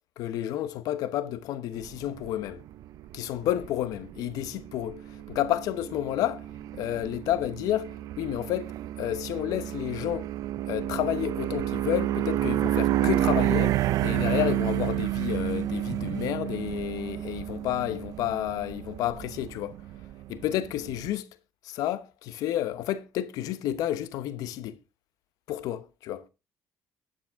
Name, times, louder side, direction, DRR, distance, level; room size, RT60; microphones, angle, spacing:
voice 1, 0.2-2.6 3.1-5.0 5.3-6.4 6.7-8.7 9.0-10.3 10.7-19.8 20.3-21.2 21.6-24.7 25.5-26.2, left 12 dB, 85° left, 0.9 m, -30 dB
sound 1, 1.8-21.1, right 13 dB, 75° right, 0.6 m, -30 dB
12.0 x 8.8 x 3.5 m
cardioid pair, 80°, 6 cm